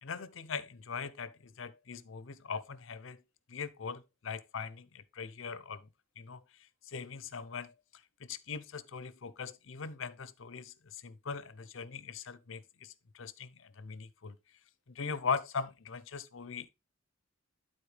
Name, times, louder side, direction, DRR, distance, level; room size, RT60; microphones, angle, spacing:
voice 1, 0.0-3.2 3.5-5.9 6.2-14.4 14.9-16.7, left 5 dB, 65° left, 0.6 m, -40 dB
11.5 x 4.3 x 3.3 m
head